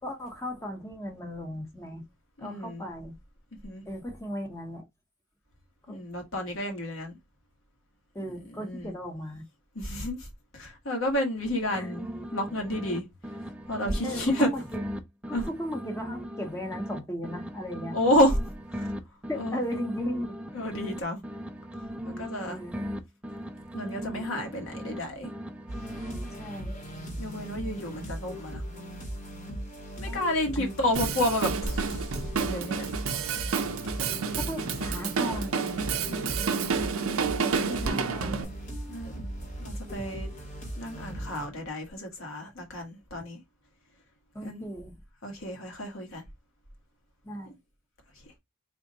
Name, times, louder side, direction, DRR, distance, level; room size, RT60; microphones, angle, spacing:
voice 1, 0.0-2.0 2.4-3.1 3.9-4.8 5.9-6.0 8.1-9.4 11.7-11.9 14.0-14.6 15.3-18.0 19.3-20.3 22.5-22.8 26.4-26.8 30.0-30.2 30.6-30.8 34.4-35.6 37.7-38.5 40.0-40.1 44.3-44.9 47.2-47.5, equal, 15° left, 1.1 m, -36 dB
voice 2, 2.4-2.8 3.6-3.8 5.9-7.2 8.2-8.9 9.7-10.3 10.5-13.0 13.7-14.5 15.3-15.5 17.9-18.4 18.7-18.9 19.3-19.6 20.5-21.2 22.0-22.6 23.7-25.3 27.2-28.6 30.0-32.9 36.0-36.6 37.8-38.1 38.9-39.3 39.6-40.3 40.8-43.4 44.4-44.6 45.2-46.2 47.5-47.6 48.1-48.2, left 1 dB, 70° left, 1.5 m, -30 dB
sound 1, 11.3-13.0 13.2-17.0 17.2-21.0 21.2-25.0 25.2-26.7, equal, 5° right, 0.4 m, -39 dB
sound 2, 25.7-41.5, equal, 40° left, 1.3 m, -38 dB
Drum kit, 30.9-38.4, right 5 dB, 80° right, 0.6 m, -30 dB
3.6 x 2.5 x 4.0 m
head